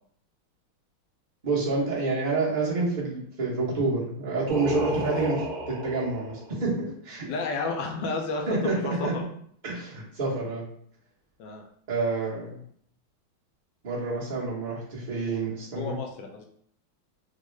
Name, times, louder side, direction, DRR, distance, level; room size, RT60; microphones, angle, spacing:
voice 1, 1.4-7.3 8.5-9.1 9.6-10.6 11.9-12.6 13.8-15.9, right 3 dB, 45° right, -6 dB, 0.6 m, -28 dB
Singing, 4.5-6.5, right 1 dB, 75° right, 0.9 m, -32 dB
voice 2, 7.3-9.2 11.4-11.6 15.8-16.5, left 3 dB, 75° left, 2 dB, 1.1 m, -32 dB
3.6 x 2.1 x 3.1 m, 0.63 s
omnidirectional pair, 2.3 m